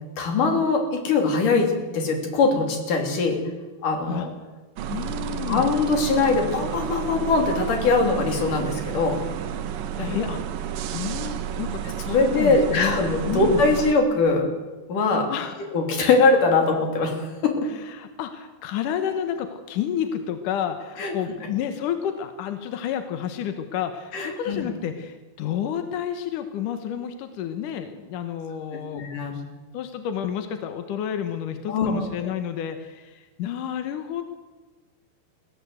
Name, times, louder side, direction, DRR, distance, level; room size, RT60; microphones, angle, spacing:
voice 1, 0.2-3.4 3.8-4.3 5.5-9.3 10.0-10.1 12.1-14.5 14.9-15.3 15.6-17.7 21.0-21.1 24.1-24.7 28.9-29.4 31.7-32.3, left 3 dB, 50° left, 3 dB, 4.2 m, -22 dB
sound 1, 4.8-13.9, right 9 dB, 75° right, 2.0 m, -31 dB
voice 2, 4.9-5.7 6.2-6.5 10.0-10.6 10.9-11.8 12.1-13.0 13.3-13.6 15.3-15.6 17.8-29.4 29.7-34.2, left 9 dB, 70° left, 8 dB, 2.1 m, -30 dB
22.0 x 16.0 x 8.0 m, 1.2 s
omnidirectional pair, 5.3 m